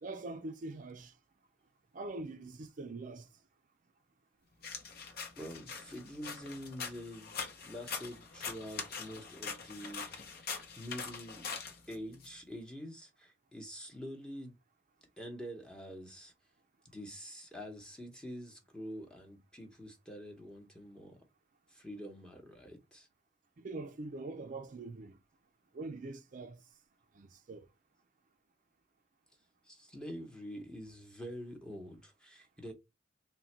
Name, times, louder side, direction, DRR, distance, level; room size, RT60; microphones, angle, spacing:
voice 1, 0.0-1.1 1.9-3.3 23.6-25.2 25.7-26.6 27.1-27.7, right 2 dB, 45° right, 0.4 m, -43 dB
sound 1, 4.6-12.3, left 5 dB, 55° left, 0.8 m, -43 dB
voice 2, 5.4-11.5 11.9-14.6 15.2-16.3 16.9-21.2 21.7-23.1 29.6-32.7, equal, 5° left, 0.8 m, -46 dB
3.7 x 2.2 x 4.3 m
head